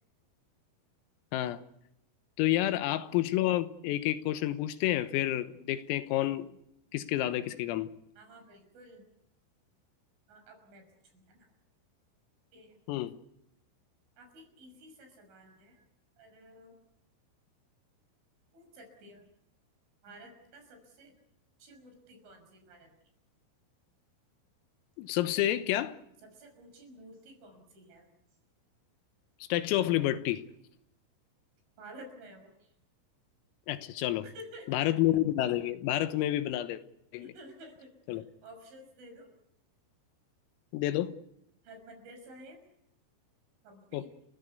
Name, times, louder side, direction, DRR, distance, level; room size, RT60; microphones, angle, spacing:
voice 1, 1.3-1.6 2.4-6.5 6.9-7.9 12.9-13.2 25.0-26.0 29.5-30.4 33.7-34.3 34.7-36.8 37.1-37.3 38.1-38.2 40.7-41.1 43.9-44.1, left 14 dB, 85° left, 3.8 m, -29 dB
voice 2, 2.6-2.9 8.2-9.1 10.3-11.5 12.5-12.8 14.2-15.9 16.2-16.8 18.5-19.3 20.0-21.1 21.6-22.9 26.2-28.1 31.8-32.7 34.2-35.0 36.1-36.3 37.2-39.4 41.6-42.6 43.6-44.1, right 1 dB, 65° right, 8.2 m, -52 dB
30.0 x 15.5 x 8.2 m
omnidirectional pair, 5.9 m